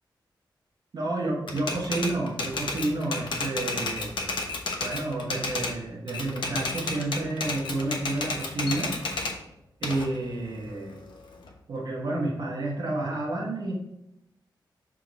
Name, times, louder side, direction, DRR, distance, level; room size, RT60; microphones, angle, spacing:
voice 1, 0.9-4.1 4.8-8.9 9.8-11.0 11.7-13.7, right 2 dB, 60° right, -5 dB, 1.2 m, -30 dB
Typewriter, 1.5-5.8 6.1-9.4 9.8-11.5, left 3 dB, 85° left, 0.9 m, -32 dB
6.3 x 3.7 x 4.0 m, 0.85 s
wide cardioid pair, 160°, 8 cm